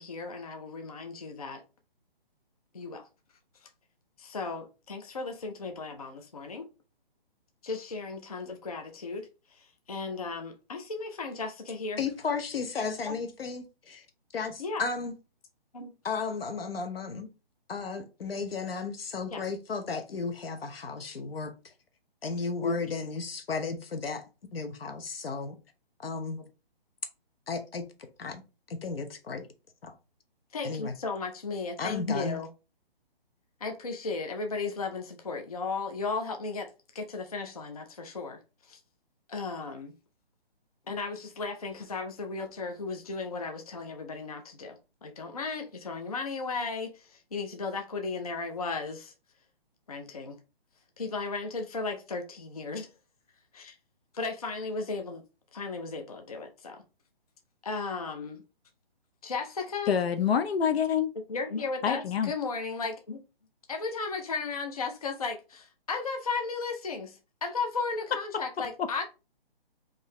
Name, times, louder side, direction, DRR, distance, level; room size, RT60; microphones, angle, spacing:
voice 1, 0.0-1.6 2.7-3.1 4.2-6.7 7.6-12.0 13.1-13.2 14.6-14.9 15.7-15.9 19.3-19.4 22.6-23.1 30.5-32.5 33.6-38.8 39.3-39.9 40.9-49.1 49.9-50.4 51.0-52.9 53.5-53.8 54.1-55.2 55.5-56.8 57.6-58.4 59.2-60.0 61.3-63.2 63.7-69.0, left 4 dB, 40° left, 0.4 m, -35 dB
voice 2, 12.0-14.0 14.3-15.1 16.0-17.3 17.7-21.5 22.2-24.3 24.5-25.6 26.0-26.4 27.5-27.8 28.2-28.4 28.8-29.4 29.8-29.9 30.6-30.9 31.8-32.4, left 4 dB, 75° left, 0.9 m, -34 dB
voice 3, 59.9-61.1 61.8-62.3, left 7 dB, 90° left, 0.5 m, -26 dB
3.7 x 2.7 x 3.0 m
hypercardioid pair, 180°, 30 cm